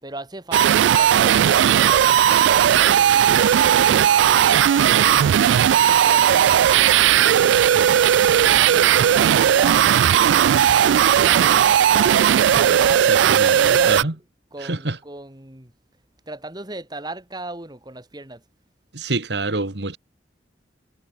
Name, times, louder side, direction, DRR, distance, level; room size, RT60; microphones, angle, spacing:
voice 1, 0.0-6.5 7.1-14.1 14.5-15.7 16.3-18.4, right 2 dB, 25° right, 2.4 m, -38 dB
sound 1, 0.5-14.0, right 9 dB, 90° right, 0.3 m, -16 dB
voice 2, 12.6-14.1 14.6-15.0 18.9-20.0, right 3 dB, 70° right, 1.8 m, -27 dB
head